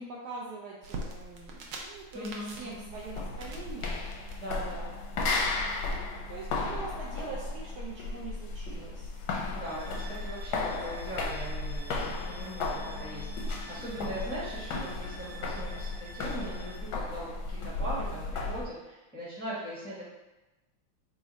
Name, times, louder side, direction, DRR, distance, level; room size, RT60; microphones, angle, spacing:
voice 1, 0.0-4.0 5.5-6.0 6.3-9.1, right 3 dB, 90° right, -3 dB, 0.8 m, -43 dB
sound 1, 0.8-6.0, right 2 dB, 70° right, 1.1 m, -44 dB
voice 2, 2.1-2.9 4.4-4.9 9.5-20.0, equal, 5° left, -9 dB, 0.7 m, -40 dB
sound 2, 2.9-18.7, left 3 dB, 70° left, 1.0 m, -35 dB
sound 3, 9.5-16.8, right 2 dB, 55° right, 1.3 m, -50 dB
4.0 x 2.4 x 4.0 m, 1.1 s
omnidirectional pair, 2.3 m